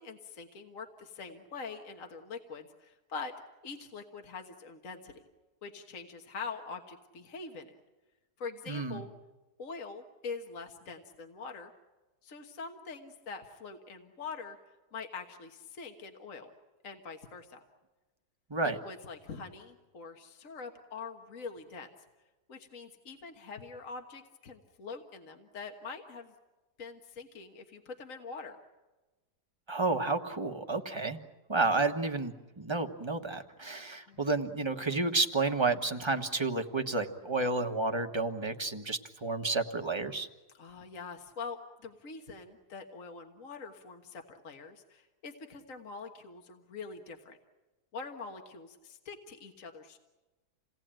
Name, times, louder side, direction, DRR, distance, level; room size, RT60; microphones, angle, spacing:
voice 1, 0.0-3.3 3.6-5.2 5.6-7.8 8.4-9.1 9.6-11.7 12.2-14.6 14.9-16.5 16.8-17.6 18.6-21.9 22.5-26.3 26.8-28.6 34.1-34.3 40.5-47.4 47.9-50.0, left 4 dB, 55° left, 4 dB, 1.8 m, -44 dB
voice 2, 8.7-9.0 18.5-18.8 29.7-31.2 31.5-40.3, right 3 dB, 20° right, 5 dB, 1.3 m, -31 dB
28.5 x 18.5 x 9.0 m, 1.1 s
omnidirectional pair, 1.6 m